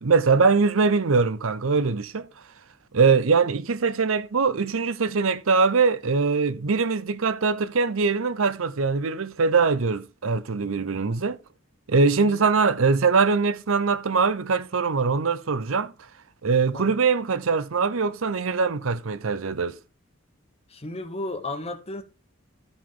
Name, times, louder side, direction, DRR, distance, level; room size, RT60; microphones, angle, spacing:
voice 1, 0.0-2.3 2.9-11.4 11.9-15.9 16.4-19.8, right 4 dB, 70° right, 0.7 m, -22 dB
voice 2, 20.7-22.0, left 2 dB, 30° left, 0.9 m, -34 dB
12.5 x 5.4 x 3.7 m
head